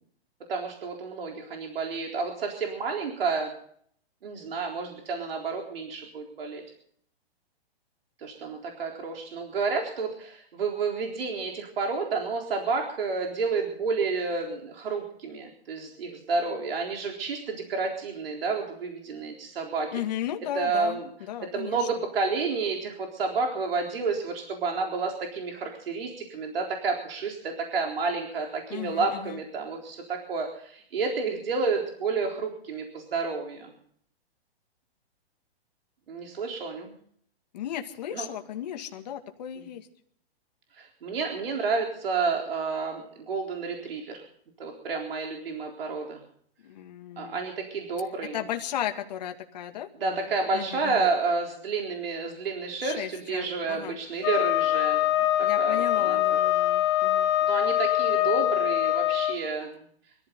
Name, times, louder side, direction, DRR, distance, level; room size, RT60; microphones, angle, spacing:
voice 1, 0.5-3.5 4.2-6.6 8.2-20.0 20.5-21.1 21.4-33.7 36.1-36.9 38.1-38.3 39.6-39.7 40.8-44.2 44.6-46.2 47.2-48.4 50.0-55.0 55.4-56.2 57.5-59.8, right 4 dB, 65° right, 1 dB, 4.0 m, -30 dB
voice 2, 19.9-21.0 21.3-21.8 28.7-29.4 37.5-39.8 46.6-47.4 48.3-51.1 52.8-54.0 55.4-57.3, left 11 dB, 40° left, 5 dB, 2.1 m, -35 dB
Wind instrument woodwind instrument, 54.2-59.4, left 13 dB, 20° left, 1.1 m, -24 dB
24.5 x 14.5 x 3.9 m, 0.63 s
hypercardioid pair, 170°, 31 cm